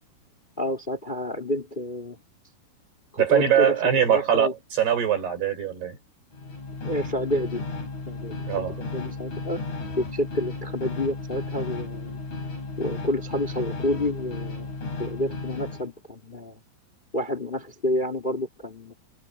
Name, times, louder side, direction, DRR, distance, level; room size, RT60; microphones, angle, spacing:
voice 1, 0.6-2.2 3.1-4.5 6.8-7.6 8.1-8.4 8.8-9.6 10.0-12.2 12.8-14.7 15.0-16.6 17.1-18.9, left 1 dB, 15° left, 2.4 m, -29 dB
voice 2, 3.2-6.0 8.5-8.8, right 9 dB, 80° right, 8.4 m, -22 dB
sound 1, 6.3-15.9, left 3 dB, 45° left, 6.4 m, -34 dB
omnidirectional pair, 4.6 m